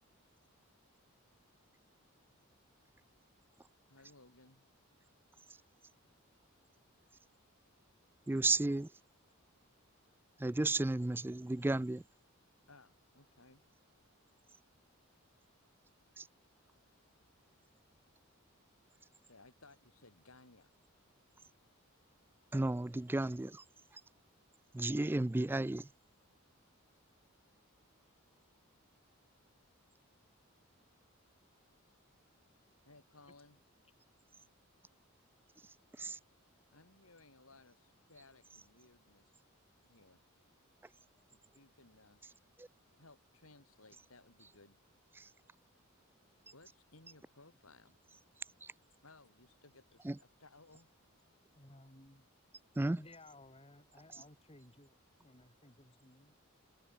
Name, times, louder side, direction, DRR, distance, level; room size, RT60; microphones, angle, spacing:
voice 1, 3.9-4.7 12.7-13.6 19.3-20.7 32.8-33.6 36.7-39.3 39.8-40.2 41.3-42.3 43.0-44.8 46.5-48.0 49.0-50.9, left 2 dB, 75° left, 6.2 m, -61 dB
voice 2, 8.3-8.9 10.4-12.0 16.2-16.3 22.5-23.6 23.9-24.0 24.7-25.9 35.6-36.2 42.6-42.7 45.1-45.3 48.6-48.7 50.0-50.2 52.8-53.0 54.1-54.2, right 2 dB, 10° right, 0.3 m, -34 dB
voice 3, 51.6-52.3 53.0-56.3, left 1 dB, 25° left, 3.8 m, -58 dB
head